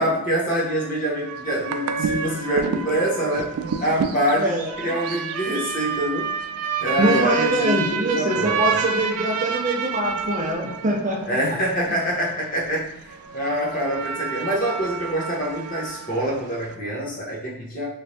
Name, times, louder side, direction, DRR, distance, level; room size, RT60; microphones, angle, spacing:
voice 1, 0.0-3.5 3.8-6.3 6.8-8.6 11.3-17.9, equal, 40° left, -4 dB, 1.0 m, -25 dB
sound 1, 0.7-16.8, right 6 dB, 85° right, 0.4 m, -29 dB
voice 2, 4.4-4.9 6.9-11.9, right 1 dB, 35° right, -1 dB, 0.6 m, -24 dB
3.3 x 3.1 x 2.7 m, 0.84 s
head